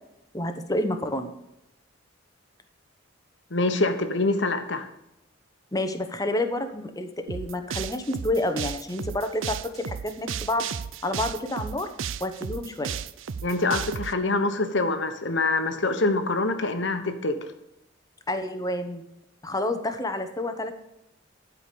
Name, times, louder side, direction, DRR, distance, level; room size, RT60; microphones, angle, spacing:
voice 1, 0.3-1.3 5.7-10.7 11.0-11.9 12.2-12.9 18.3-19.0 19.4-20.8, left 1 dB, 20° left, 7 dB, 0.9 m, -29 dB
voice 2, 3.5-4.9 13.4-17.4, left 2 dB, 65° left, 8 dB, 1.1 m, -25 dB
sound 1, 7.3-14.1, right 7 dB, 75° right, 0.5 m, -34 dB
12.0 x 5.0 x 6.9 m, 0.88 s
head